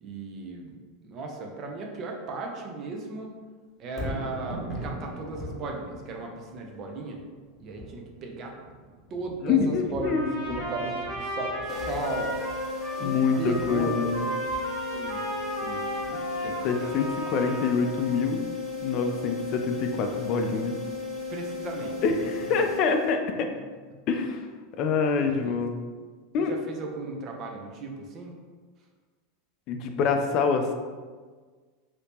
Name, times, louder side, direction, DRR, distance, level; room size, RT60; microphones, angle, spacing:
voice 1, 0.0-3.3 3.8-7.2 7.6-8.5 9.1-12.4 12.9-14.4 14.9-16.9 21.3-22.7 25.2-25.6 26.4-28.3, right 3 dB, 45° right, 1 dB, 0.6 m, -36 dB
Thunder, 3.8-18.1 18.5-18.6, equal, ahead, 1.1 m, -42 dB
voice 2, 9.4-10.6 13.0-14.2 16.6-18.4 18.8-20.8 22.0-23.5 24.1-24.5 24.8-25.7 26.3-26.5 29.7-30.7, left 5 dB, 50° left, 5 dB, 0.4 m, -26 dB
Trumpet, 10.0-18.1, equal, 80° right, 1.3 m, -35 dB
sound 1, 11.7-23.4, left 4 dB, 25° left, 0.8 m, -35 dB
2.8 x 2.7 x 3.5 m, 1.5 s
hypercardioid pair, 105°, 0 cm